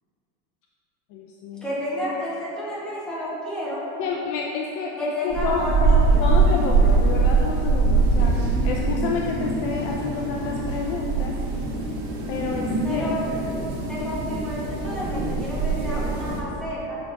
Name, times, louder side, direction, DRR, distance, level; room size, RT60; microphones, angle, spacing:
voice 1, 1.1-1.7 4.0-5.9 6.2-11.3 12.3-13.1, left 5 dB, 50° left, 0 dB, 0.5 m, -29 dB
voice 2, 1.6-3.8 5.0-6.2 12.8-13.2 13.9-17.0, equal, 5° left, -9 dB, 1.1 m, -31 dB
sound 1, 5.3-16.4, right 3 dB, 50° right, 1.1 m, -23 dB
6.8 x 5.6 x 2.6 m, 2.9 s
cardioid pair, 170°, 31 cm